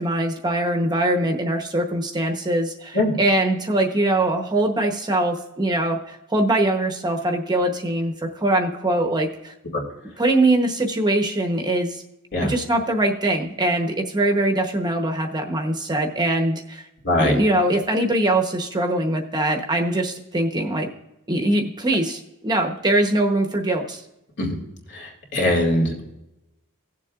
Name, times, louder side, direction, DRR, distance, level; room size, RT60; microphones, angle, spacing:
voice 1, 0.0-9.5 10.2-12.0 12.4-16.8 17.2-20.9 21.3-24.0, right 1 dB, 20° right, 3 dB, 1.0 m, -22 dB
voice 2, 17.0-17.4 24.4-24.6 24.9-26.0, left 1 dB, 55° left, -1 dB, 2.3 m, -21 dB
17.5 x 7.4 x 2.5 m, 0.89 s
head